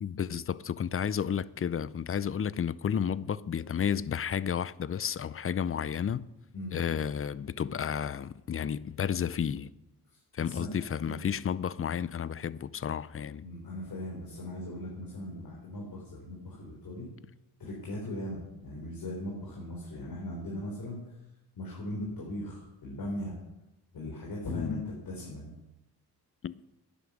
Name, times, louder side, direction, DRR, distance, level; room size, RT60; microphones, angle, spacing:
voice 1, 0.0-6.2 6.7-9.7 10.3-13.4 24.5-24.8 26.4-26.6, left 8 dB, 35° left, 0.5 m, -32 dB
voice 2, 10.1-10.7 11.0-11.1 13.4-17.1 17.6-21.1 21.6-23.4 23.9-25.5, left 1 dB, 60° left, 3.9 m, -39 dB
11.0 x 10.0 x 7.2 m
cardioid pair, 90°, 39 cm